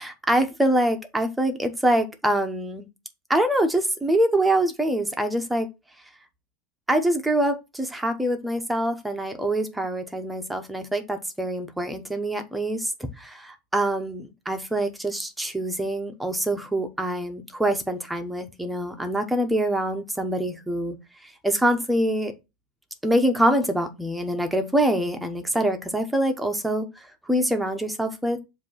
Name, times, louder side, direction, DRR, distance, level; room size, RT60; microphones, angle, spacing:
voice 1, 0.0-2.9 3.3-5.7 6.9-12.9 13.2-20.9 21.4-22.3 23.0-26.9 27.3-28.4, right 1 dB, 5° right, 0.9 m, -25 dB
7.3 x 2.7 x 5.6 m
supercardioid pair, 155°, 0 cm